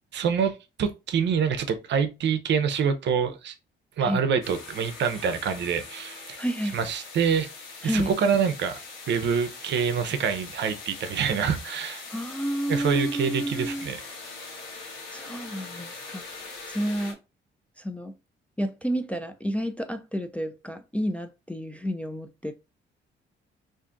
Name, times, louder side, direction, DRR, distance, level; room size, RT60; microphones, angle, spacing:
voice 1, 0.1-3.5 4.0-6.4 6.7-7.5 7.8-8.8 9.1-12.0 12.7-14.0, right 6 dB, 65° right, 0.6 m, -26 dB
sound 1, 4.4-17.1, left 4 dB, 85° left, 0.9 m, -42 dB
voice 2, 6.4-6.9 7.8-8.1 12.1-13.9 15.1-17.2 17.8-18.1 18.6-22.5, equal, 5° left, 0.3 m, -30 dB
2.6 x 2.4 x 3.7 m
cardioid pair, 90°, 20 cm